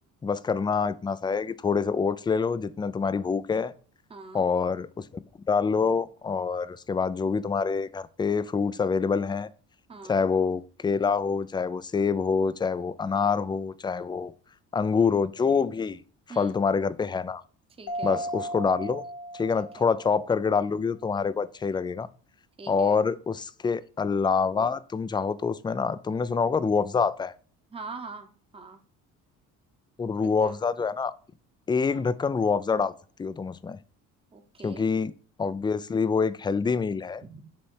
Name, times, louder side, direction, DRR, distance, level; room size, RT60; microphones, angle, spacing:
voice 1, 0.2-3.7 4.3-5.0 5.5-9.5 10.1-14.3 14.7-16.0 16.4-17.4 18.0-19.0 19.3-22.1 22.7-27.3 30.0-31.1 31.7-32.9 33.2-33.8 34.6-35.1 35.4-37.2, left 5 dB, 15° left, 0.3 m, -26 dB
voice 2, 4.1-4.5 9.9-10.2 16.3-16.6 17.8-18.2 19.8-19.9 22.6-23.0 27.7-28.8 30.4-30.6 31.9-32.1 34.3-34.9 37.2-37.4, right 4 dB, 15° right, 0.9 m, -43 dB
Mallet percussion, 17.9-20.4, right 1 dB, 50° left, 0.8 m, -36 dB
7.2 x 3.2 x 4.7 m
cardioid pair, 110°, 34 cm